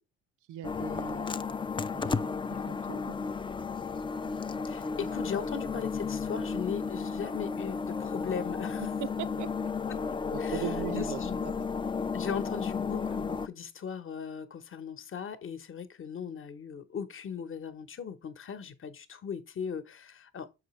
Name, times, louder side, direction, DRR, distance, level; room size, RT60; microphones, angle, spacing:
voice 1, 0.5-1.4 1.9-3.1 8.8-9.5 10.3-11.7, right 11 dB, 80° right, 0.6 m, -40 dB
sound 1, 0.6-13.5, left 5 dB, 15° left, 0.3 m, -33 dB
voice 2, 4.7-8.8 9.9-10.0 10.4-10.6 10.9-11.4 12.1-20.5, left 7 dB, 45° left, 0.9 m, -38 dB
6.4 x 4.9 x 3.1 m
cardioid pair, 90°, 30 cm